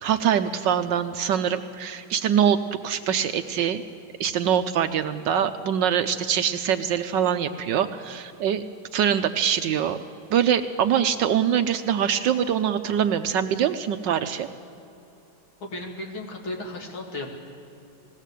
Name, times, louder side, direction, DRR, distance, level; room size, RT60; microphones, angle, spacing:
voice 1, 0.0-2.6 2.8-3.8 4.2-8.7 8.9-10.0 10.3-14.5, right 9 dB, 70° right, 9 dB, 1.2 m, -23 dB
voice 2, 15.6-17.3, left 2 dB, 70° left, 1 dB, 3.2 m, -34 dB
20.0 x 16.0 x 8.3 m, 2.8 s
omnidirectional pair, 2.3 m